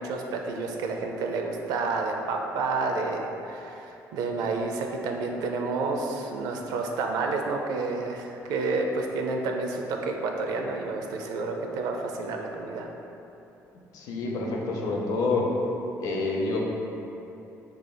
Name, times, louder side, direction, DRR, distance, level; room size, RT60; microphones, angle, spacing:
voice 1, 0.0-12.9, right 3 dB, 90° right, 2 dB, 0.4 m, -30 dB
voice 2, 13.9-15.5 16.0-16.6, left 3 dB, 70° left, -1 dB, 0.6 m, -27 dB
4.5 x 3.3 x 2.2 m, 3.0 s
cardioid pair, 135°, 6 cm